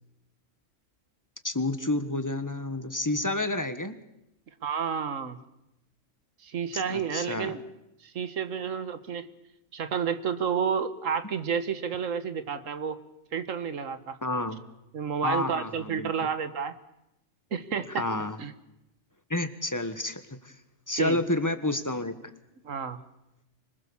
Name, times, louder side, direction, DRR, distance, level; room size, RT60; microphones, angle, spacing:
voice 1, 1.4-4.0 6.7-7.6 14.2-14.6 15.2-16.1 17.9-18.4 19.3-20.6 20.9-22.3, left 2 dB, 15° left, 10 dB, 1.3 m, -30 dB
voice 2, 4.6-5.4 6.4-7.6 8.0-9.3 9.7-13.0 13.3-14.2 14.9-16.7 17.5-18.1 18.4-18.5 21.0-21.2 22.6-23.0, right 7 dB, 75° right, 12 dB, 1.7 m, -30 dB
25.5 x 20.5 x 7.1 m, 0.87 s
omnidirectional pair, 1.4 m